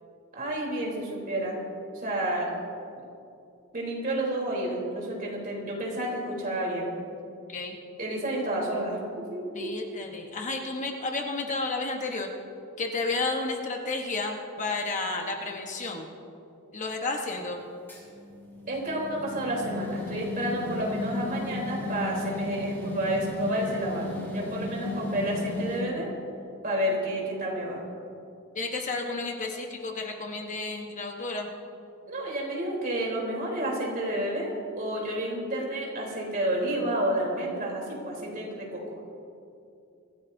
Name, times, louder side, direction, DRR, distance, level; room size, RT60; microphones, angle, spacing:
voice 1, 0.3-1.6 1.9-2.5 3.7-6.9 8.0-9.7 18.7-26.1 26.6-27.8 32.1-39.0, right 1 dB, 40° right, -3 dB, 3.6 m, -30 dB
voice 2, 9.5-12.3 12.8-16.1 16.7-17.6 28.5-31.5, left 3 dB, 35° left, 2 dB, 1.2 m, -32 dB
sound 1, 17.9-25.8, left 2 dB, 10° left, 3.7 m, -34 dB
24.0 x 15.5 x 2.7 m, 2.7 s
head